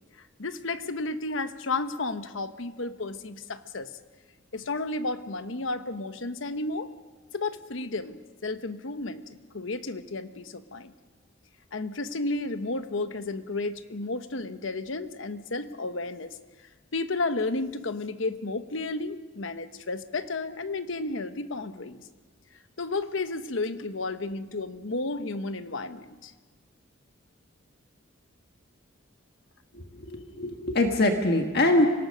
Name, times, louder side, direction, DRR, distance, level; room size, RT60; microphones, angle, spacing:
voice 1, 0.4-3.9 4.5-6.9 7.3-10.9 11.7-16.4 16.9-22.0 22.8-26.3, left 3 dB, 70° left, 11 dB, 1.0 m, -32 dB
voice 2, 29.7-31.9, left 1 dB, 55° left, 4 dB, 1.5 m, -24 dB
25.5 x 18.0 x 6.5 m, 1.4 s
head